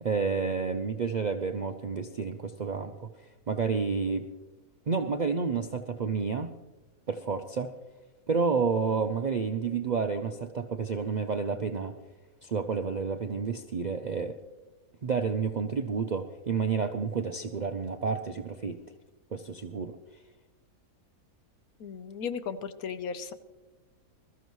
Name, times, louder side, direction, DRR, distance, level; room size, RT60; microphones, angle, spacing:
voice 1, 0.0-3.1 3.5-4.3 4.9-6.5 7.1-7.7 8.3-12.0 12.4-14.4 15.0-18.8 19.3-20.0, right 5 dB, 60° right, 7 dB, 0.4 m, -30 dB
voice 2, 21.8-23.3, left 6 dB, 75° left, 11 dB, 1.3 m, -36 dB
21.0 x 13.5 x 3.1 m, 1.1 s
omnidirectional pair, 1.5 m